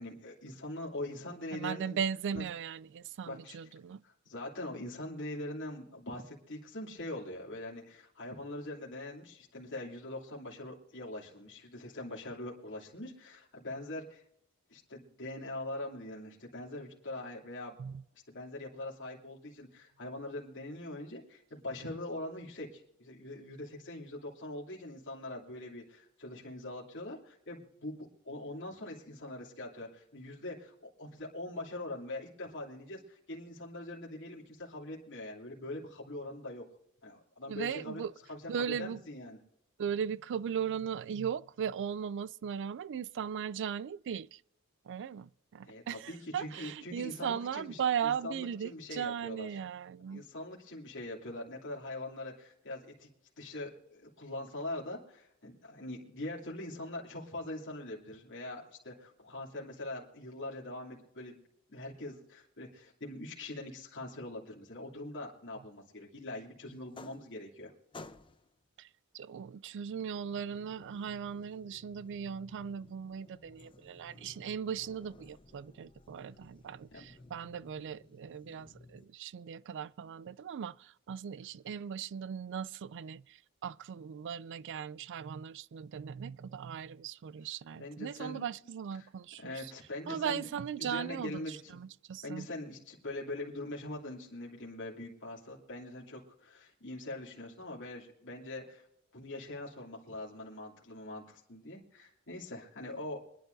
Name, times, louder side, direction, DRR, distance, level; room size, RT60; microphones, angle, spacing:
voice 1, 0.0-2.0 2.3-2.4 3.3-3.6 4.0-14.2 14.7-17.8 18.3-36.6 37.0-38.0 38.3-38.4 38.8-39.4 45.6-49.5 50.1-53.1 53.4-61.4 61.7-67.7 76.9-77.1 87.8-88.4 89.4-90.5 90.8-91.8 92.2-98.9 99.1-103.2, left 1 dB, 60° left, 2.9 m, -43 dB
voice 2, 1.5-4.0 17.8-18.0 37.5-38.1 38.5-39.0 39.8-44.4 44.8-50.2 68.8-68.9 69.1-89.7 90.1-92.5, right 7 dB, 55° right, 0.4 m, -38 dB
sound 1, 66.7-67.6 67.9-68.6 69.7-79.1, left 2 dB, 25° left, 0.7 m, -56 dB
25.0 x 10.5 x 2.7 m
head